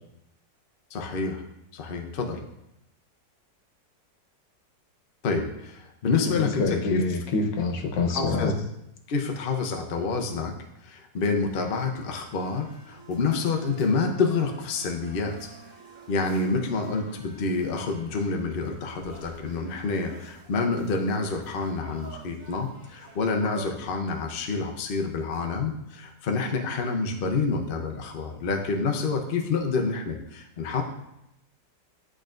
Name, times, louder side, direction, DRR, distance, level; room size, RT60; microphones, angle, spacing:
voice 1, 0.9-1.4 1.7-2.4 5.2-7.0 8.1-8.5 9.1-10.5 10.8-15.5 16.1-30.8, left 4 dB, 60° left, 3 dB, 0.5 m, -28 dB
voice 2, 6.2-8.5, left 3 dB, 90° left, 3 dB, 1.6 m, -26 dB
sound 1, 11.1-23.6, right 3 dB, 30° right, 1.1 m, -49 dB
10.5 x 3.8 x 2.5 m, 0.85 s
omnidirectional pair, 1.9 m